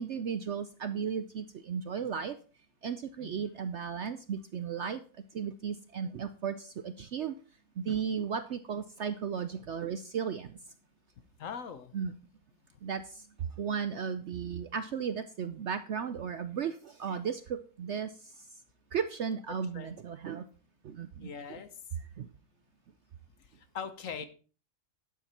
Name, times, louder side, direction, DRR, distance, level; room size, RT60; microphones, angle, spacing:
voice 1, 0.0-2.4 2.8-5.0 5.3-7.4 7.8-10.5 11.9-12.1 12.8-13.3 13.6-18.3 18.9-20.4 20.8-21.3 22.2-22.3, right 7 dB, 60° right, 11 dB, 0.7 m, -35 dB
voice 2, 11.4-11.9 19.7-20.0 21.2-21.8 23.4-24.3, left 6 dB, 60° left, 11 dB, 1.2 m, -41 dB
12.0 x 8.4 x 4.3 m, 0.39 s
omnidirectional pair, 1.7 m